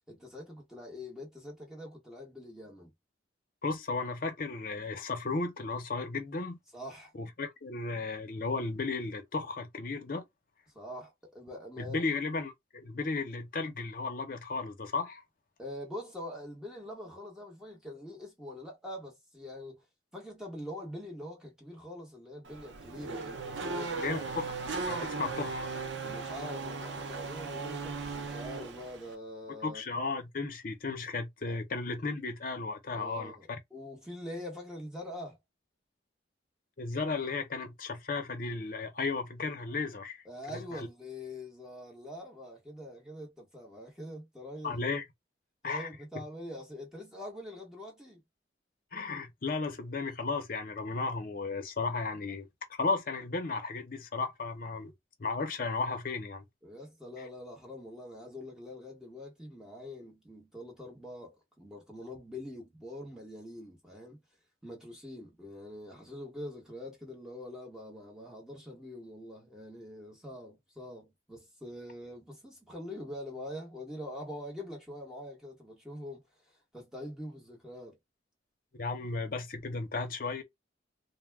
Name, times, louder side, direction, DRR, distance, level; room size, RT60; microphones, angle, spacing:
voice 1, 0.1-2.9 6.7-7.1 10.7-12.1 15.6-19.8 20.1-24.2 26.0-29.8 31.5-31.6 32.9-35.4 40.2-45.0 45.6-48.2 56.6-64.2 64.6-76.2 76.7-78.0, left 1 dB, 5° right, 1.0 m, -44 dB
voice 2, 3.6-6.6 7.1-10.2 11.8-15.2 24.0-25.7 26.1-26.2 29.6-33.6 36.8-40.2 40.5-40.9 44.6-45.0 45.6-45.9 48.9-52.5 52.8-54.9 55.2-56.4 57.2-57.3 78.7-80.4, left 3 dB, 50° left, 0.7 m, -34 dB
Race car auto racing / Accelerating revving vroom, 22.4-29.1, right 4 dB, 80° right, 0.5 m, -37 dB
2.2 x 2.2 x 3.3 m
head